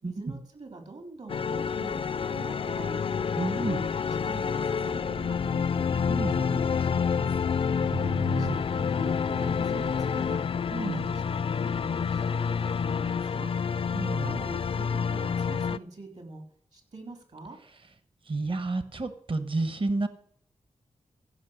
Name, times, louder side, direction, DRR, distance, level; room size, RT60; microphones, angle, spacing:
voice 1, 0.0-3.3 3.7-5.9 6.2-7.3 7.9-10.4 10.8-11.4 12.0-13.5 14.2-16.4 16.7-17.6, right 3 dB, 70° right, 4 dB, 3.6 m, -45 dB
sound 1, 1.3-15.8, left 6 dB, 55° left, 0.4 m, -28 dB
voice 2, 3.4-3.9 6.1-6.5 7.9-8.6 10.7-11.1 13.9-14.4 18.3-20.1, right 3 dB, 50° right, 11 dB, 1.1 m, -31 dB
15.0 x 5.6 x 6.5 m, 0.64 s
cardioid pair, 50°, 11 cm